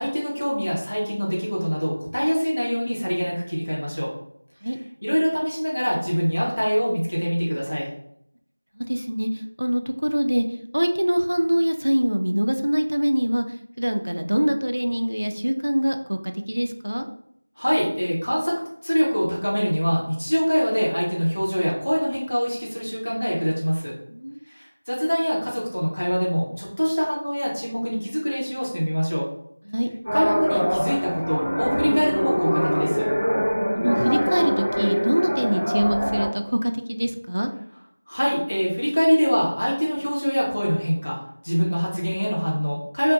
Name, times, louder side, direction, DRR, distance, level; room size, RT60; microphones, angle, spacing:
voice 1, 0.0-4.1 4.7-7.9 17.6-18.6 18.8-23.9 24.5-29.2 30.1-33.1 38.1-41.2 41.4-43.1, equal, 70° left, -5 dB, 1.2 m, -24 dB
voice 2, 8.8-9.3 9.6-10.4 10.7-13.4 13.8-17.1 24.1-24.4 29.7-29.9 33.7-37.5, equal, 65° right, 6 dB, 0.3 m, -24 dB
sound 1, 30.0-36.3, equal, 15° left, 1.5 m, -24 dB
2.6 x 2.5 x 2.6 m, 0.71 s
figure-of-eight pair, 180°, 0 cm